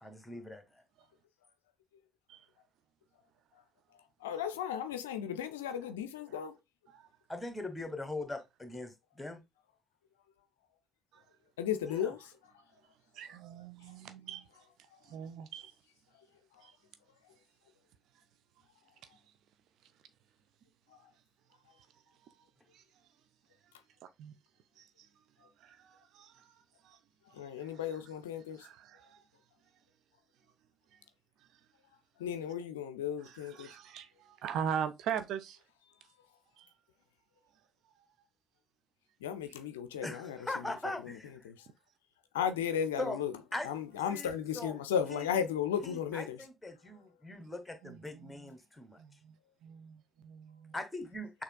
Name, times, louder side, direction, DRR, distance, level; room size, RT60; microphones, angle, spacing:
voice 1, 0.0-0.6 7.3-9.4 11.9-12.1 40.0-41.5 43.0-43.2 43.5-43.7 44.1-44.8 45.1-45.3 45.8-49.0 50.7-51.4, left 2 dB, 10° left, 1.3 m, -41 dB
voice 2, 4.2-6.6 11.6-12.3 27.3-28.7 32.2-33.8 39.2-40.4 41.0-41.2 41.4-41.7 42.3-43.3 43.6-46.4, left 8 dB, 75° left, 0.4 m, -35 dB
voice 3, 13.1-14.5 15.0-15.7 16.6-16.7 24.2-24.3 24.8-24.9 25.6-26.5 26.8-27.0 27.6-28.0 28.6-29.2 33.2-35.6 36.6-36.7 47.4-47.5 47.8-48.5 49.0-49.4 49.6-50.7, right 8 dB, 60° right, 0.6 m, -41 dB
6.4 x 2.8 x 2.2 m
figure-of-eight pair, 50°, 0 cm